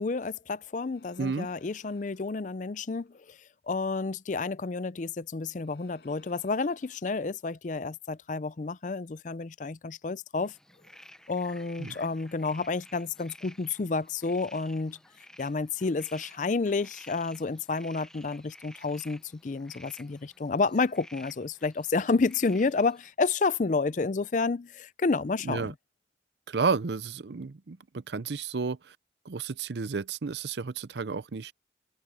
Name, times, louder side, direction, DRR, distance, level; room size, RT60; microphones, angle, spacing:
voice 1, 0.0-3.4 3.7-10.5 11.3-15.0 15.4-25.7, left 4 dB, 45° left, 0.5 m, -30 dB
sound 1, 0.8-2.3 3.0-3.6 5.5-7.0, left 3 dB, 65° left, 6.0 m, -61 dB
voice 2, 1.2-1.5 11.8-12.0 25.4-25.7 26.5-28.9 29.3-31.5, right 4 dB, 70° right, 0.6 m, -32 dB
sound 2, 10.4-23.1, left 1 dB, 5° left, 0.7 m, -53 dB
open air
head